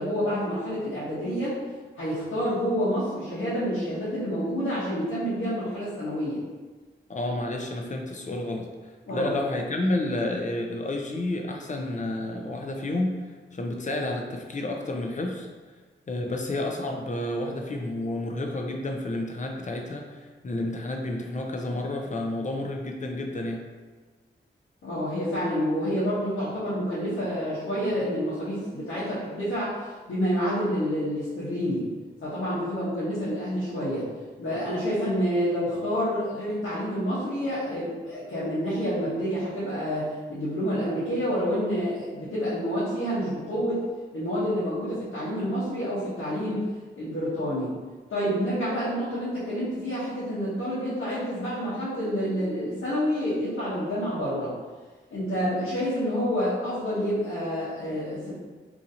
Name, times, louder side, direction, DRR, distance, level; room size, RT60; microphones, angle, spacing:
voice 1, 0.0-1.5 2.0-6.4 9.1-9.3 24.8-31.9 32.2-34.1 34.4-43.8 44.1-46.6 47.0-47.7 48.1-54.5 55.1-58.3, equal, 80° left, -12 dB, 1.1 m, -28 dB
voice 2, 7.1-8.7 9.1-13.1 13.5-15.5 16.1-23.6, left 1 dB, 40° left, 2 dB, 0.6 m, -30 dB
3.0 x 2.7 x 3.8 m, 1.3 s
cardioid pair, 45°, 20 cm